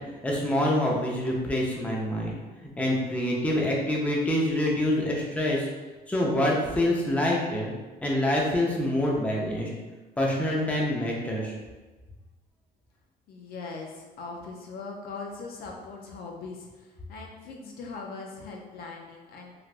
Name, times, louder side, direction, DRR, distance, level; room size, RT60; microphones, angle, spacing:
voice 1, 0.2-2.3 2.8-5.7 6.1-7.7 8.0-9.7 10.2-11.5, left 1 dB, 10° left, -3 dB, 0.5 m, -26 dB
voice 2, 13.3-19.5, left 4 dB, 65° left, 0 dB, 0.5 m, -40 dB
3.3 x 2.4 x 2.4 m, 1.2 s
cardioid pair, 110°, 17 cm